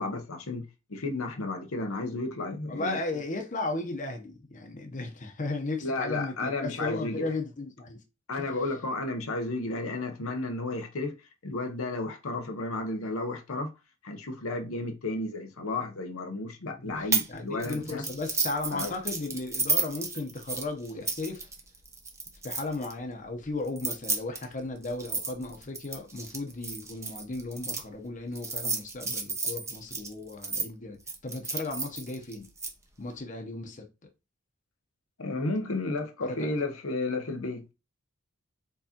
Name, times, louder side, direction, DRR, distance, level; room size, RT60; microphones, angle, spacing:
voice 1, 0.0-3.0 5.8-7.3 8.3-11.2 11.4-13.7 14.0-18.0 18.7-18.9 35.2-37.7, left 2 dB, 85° left, 0.9 m, -33 dB
voice 2, 2.7-8.0 8.4-8.6 16.8-21.5 22.4-32.5 33.0-33.9 36.2-36.5, left 2 dB, 40° left, 0.9 m, -35 dB
sound 1, 17.1-17.3 17.6-22.9 23.7-27.8 28.4-30.7 31.1-32.7, right 4 dB, 15° right, 0.8 m, -32 dB
4.5 x 4.0 x 2.9 m
head